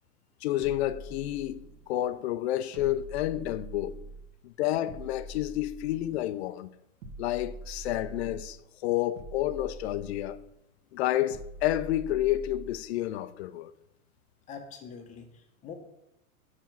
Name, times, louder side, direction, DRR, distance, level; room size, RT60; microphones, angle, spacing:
voice 1, 0.4-4.0 4.4-6.7 7.2-8.6 8.8-10.4 10.9-13.7, left 14 dB, 45° left, 0.5 m, -30 dB
sound 1, 0.6-1.9 2.7-4.4 4.9-6.3 7.0-8.6 9.2-10.6 11.3-12.9, right 2 dB, 55° right, 1.4 m, -44 dB
voice 2, 14.5-15.7, left 6 dB, 15° left, 0.8 m, -44 dB
7.3 x 4.4 x 5.9 m
hypercardioid pair, 140°, 45 cm